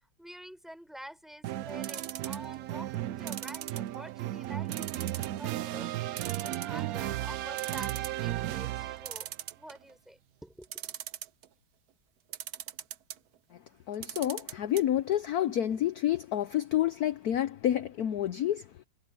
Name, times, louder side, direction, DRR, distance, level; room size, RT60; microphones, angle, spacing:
voice 1, 0.2-9.3 9.6-10.9, equal, ahead, 6.6 m, -48 dB
sound 1, 1.4-9.3, right 14 dB, 85° right, 0.8 m, -35 dB
sound 2, 1.8-2.6 3.3-4.2 4.7-5.4 5.7-5.8 6.2-7.0 7.3-7.4 7.6-8.2 9.0-9.9 10.6-11.5 12.3-13.2 13.9-14.8 15.1-15.2 15.5-15.6, right 11 dB, 60° right, 1.1 m, -40 dB
voice 2, 13.5-18.8, left 11 dB, 65° left, 1.0 m, -29 dB
omnidirectional pair, 2.1 m